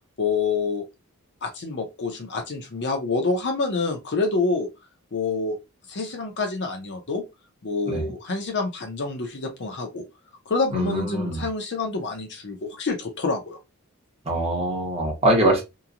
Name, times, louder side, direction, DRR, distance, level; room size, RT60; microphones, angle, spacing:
voice 1, 0.2-0.9 1.4-4.7 5.1-5.6 5.9-7.2 7.6-10.0 10.5-13.6, left 3 dB, 50° left, 0.6 m, -27 dB
voice 2, 10.7-11.4 14.3-15.6, right 1 dB, 30° right, 1.0 m, -23 dB
2.9 x 2.2 x 2.4 m
head